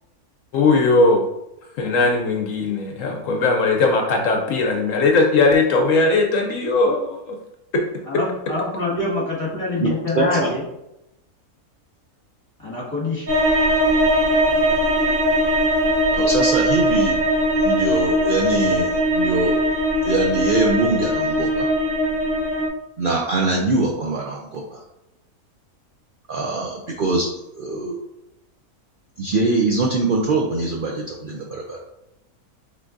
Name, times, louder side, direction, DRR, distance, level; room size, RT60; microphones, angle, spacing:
voice 1, 0.5-1.3 1.8-7.4 7.7-7.8 8.1-8.2, left 3 dB, 70° left, 2 dB, 0.9 m, -19 dB
voice 2, 8.0-10.6 12.6-13.3, left 2 dB, 20° left, -6 dB, 1.7 m, -25 dB
voice 3, 10.2-10.5 16.2-17.2 17.6-19.7 20.0-21.7 23.0-24.8 26.3-27.3 27.6-28.0 29.2-31.8, right 3 dB, 80° right, -1 dB, 0.4 m, -22 dB
sound 1, 13.3-22.7, equal, 50° right, 0.9 m, -20 dB
5.9 x 3.2 x 2.6 m, 0.88 s
omnidirectional pair, 1.6 m